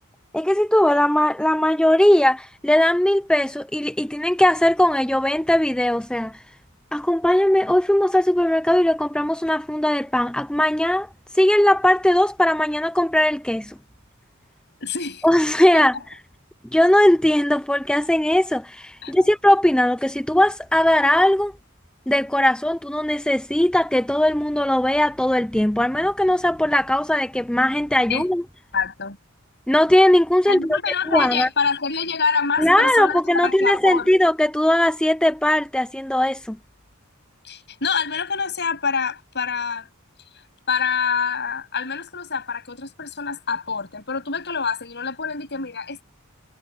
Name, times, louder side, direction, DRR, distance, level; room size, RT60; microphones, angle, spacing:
voice 1, 0.3-6.4 6.9-11.1 11.3-13.7 15.2-16.0 16.7-21.5 22.1-28.4 29.7-30.8 31.1-31.5 32.6-36.6, left 1 dB, 5° left, 0.5 m, -19 dB
voice 2, 14.8-15.2 15.7-15.8 19.0-19.3 28.1-28.3 28.7-29.2 30.5-34.1 37.4-39.9 40.7-46.0, left 5 dB, 55° left, 7.7 m, -26 dB
head